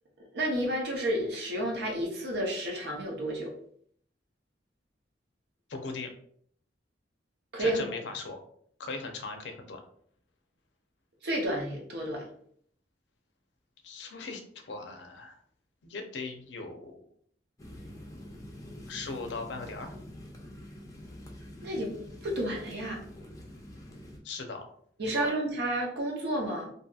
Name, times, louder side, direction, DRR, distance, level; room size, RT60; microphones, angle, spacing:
voice 1, 0.3-3.5 7.5-7.9 11.2-12.2 21.6-21.9 22.2-23.0 25.0-26.7, right 1 dB, 65° right, 0 dB, 0.7 m, -31 dB
voice 2, 5.7-6.1 7.6-8.4 8.8-9.8 13.8-15.4 15.8-17.0 18.9-19.9 24.2-24.6 25.1-25.3, left 3 dB, 85° left, 5 dB, 0.5 m, -39 dB
sound 1, 17.6-24.2, left 1 dB, 20° left, 0.5 m, -46 dB
2.7 x 2.6 x 2.3 m, 0.63 s
head